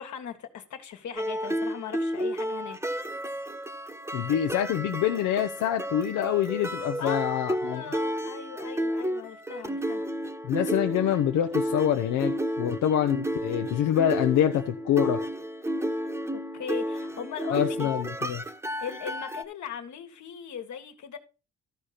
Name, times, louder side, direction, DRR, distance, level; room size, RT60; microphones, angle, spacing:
voice 1, 0.0-2.8 6.8-7.2 7.6-10.0 16.3-17.9 18.8-21.2, left 8 dB, 70° left, 1.6 m, -38 dB
sound 1, 1.2-19.4, equal, 10° right, 1.0 m, -32 dB
voice 2, 4.1-7.8 10.5-15.2 17.5-18.4, left 10 dB, 90° left, 0.8 m, -26 dB
13.5 x 5.0 x 4.2 m
cardioid pair, 90°, 30 cm